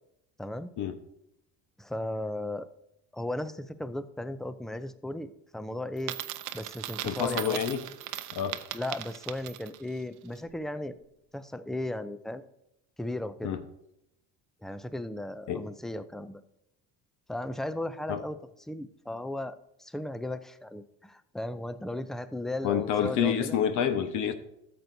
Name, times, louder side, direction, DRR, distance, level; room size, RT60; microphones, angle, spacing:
voice 1, 0.4-0.7 1.8-2.7 3.1-6.2 6.5-7.6 8.7-11.0 11.3-12.4 13.0-13.6 14.6-16.4 17.3-18.4 18.7-23.6, left 1 dB, ahead, 12 dB, 0.4 m, -36 dB
Coin (dropping), 6.0-9.9, right 14 dB, 70° right, 0.7 m, -38 dB
voice 2, 7.0-7.8 8.3-8.6 13.4-13.6 15.5-15.6 18.1-18.2 22.6-24.3, left 8 dB, 65° left, 9 dB, 1.1 m, -28 dB
13.5 x 7.9 x 2.7 m, 0.81 s
cardioid pair, 120°, 32 cm